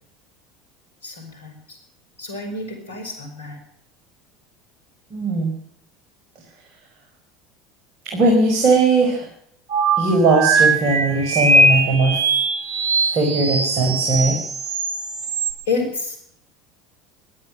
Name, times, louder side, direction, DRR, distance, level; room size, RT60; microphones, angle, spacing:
voice 1, 1.0-1.8 2.2-3.6 15.7-16.2, left 4 dB, 85° left, 5 dB, 5.0 m, -29 dB
voice 2, 5.1-5.5 8.1-9.2 10.0-12.2 13.1-14.4, right 3 dB, 50° right, 0 dB, 5.4 m, -18 dB
sound 1, 9.7-15.5, right 2 dB, 65° right, 3.6 m, -20 dB
17.5 x 12.0 x 6.5 m, 0.66 s
hypercardioid pair, 75°, 0 cm